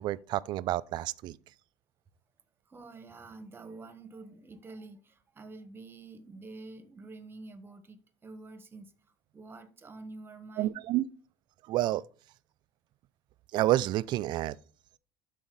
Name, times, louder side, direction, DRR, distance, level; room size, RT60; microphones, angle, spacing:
voice 1, 0.0-1.4 10.6-11.1 11.7-12.0 13.5-14.6, right 15 dB, 55° right, 0.4 m, -29 dB
voice 2, 2.7-8.9 9.3-10.8, right 3 dB, 25° right, 1.4 m, -48 dB
12.0 x 4.2 x 4.0 m
supercardioid pair, 90°, 9 cm